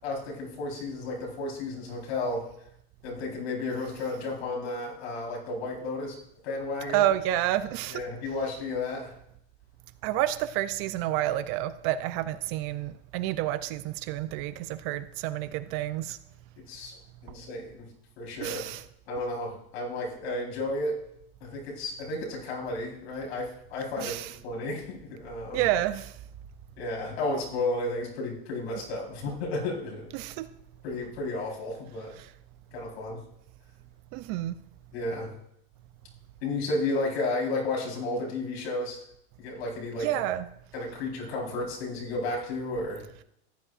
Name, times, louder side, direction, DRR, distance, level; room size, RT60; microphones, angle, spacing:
voice 1, 0.0-2.5 3.0-6.2 6.4-7.1 7.9-9.2 16.6-16.9 17.2-17.9 18.2-18.6 19.1-21.0 21.4-25.7 26.8-30.1 30.8-32.1 32.7-33.2 34.9-35.4 36.4-39.0 39.4-40.3 40.7-43.1, left 2 dB, 80° left, -2 dB, 4.2 m, -33 dB
voice 2, 6.9-8.0 10.0-16.2 18.4-18.8 24.0-24.3 25.5-26.2 30.1-30.5 32.2-32.3 34.1-34.6 40.0-40.5, right 13 dB, 45° right, 13 dB, 0.5 m, -29 dB
14.5 x 9.8 x 2.5 m, 0.74 s
supercardioid pair, 140°, 32 cm